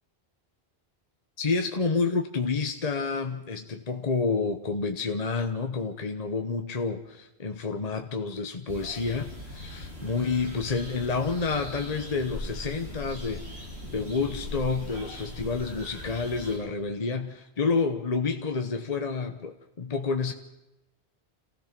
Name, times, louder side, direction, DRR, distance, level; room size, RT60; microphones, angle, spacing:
voice 1, 1.4-13.5 13.9-20.3, left 4 dB, 40° left, 6 dB, 1.1 m, -29 dB
sound 1, 8.7-16.6, left 1 dB, 75° right, 8.4 m, -40 dB
27.0 x 16.0 x 6.0 m, 0.95 s
omnidirectional pair, 1.1 m